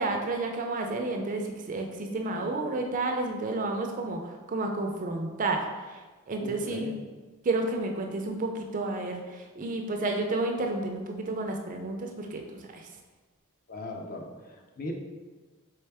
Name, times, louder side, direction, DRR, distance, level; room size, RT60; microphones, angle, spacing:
voice 1, 0.0-7.0 7.4-12.9, right 2 dB, 35° right, 3 dB, 0.4 m, -31 dB
voice 2, 6.4-6.9 13.7-14.9, left 2 dB, 40° left, 1 dB, 0.6 m, -39 dB
4.5 x 3.4 x 3.3 m, 1.3 s
head